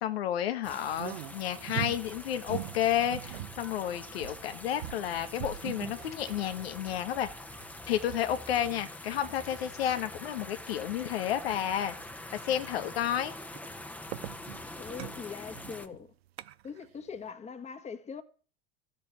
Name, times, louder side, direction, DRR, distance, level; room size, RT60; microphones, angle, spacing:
voice 1, 0.0-7.3 7.9-11.9 12.3-13.3, left 10 dB, 85° left, 1.7 m, -31 dB
sound 1, 0.6-15.9, left 1 dB, 5° left, 1.3 m, -45 dB
sound 2, 0.6-9.9 10.3-10.4 10.9-11.0 11.5-11.6 12.0-12.3 12.8-16.9 17.1-17.3, right 14 dB, 85° right, 0.8 m, -43 dB
voice 2, 14.8-16.1 16.6-18.2, left 6 dB, 20° left, 1.6 m, -42 dB
13.0 x 7.4 x 9.0 m
hypercardioid pair, 110°, 30 cm